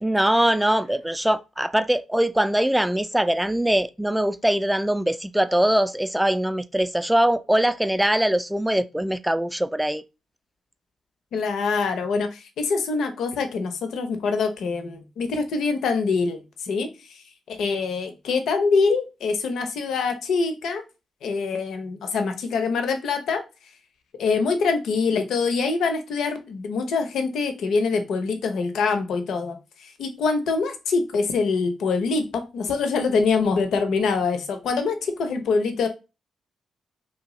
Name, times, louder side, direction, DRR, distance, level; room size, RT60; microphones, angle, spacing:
voice 1, 0.0-10.0, right 1 dB, 5° right, 0.3 m, -22 dB
voice 2, 11.3-16.9 17.5-20.8 21.2-23.4 24.2-35.9, left 4 dB, 75° left, 0.5 m, -24 dB
2.7 x 2.3 x 2.9 m
supercardioid pair, 50°, 0 cm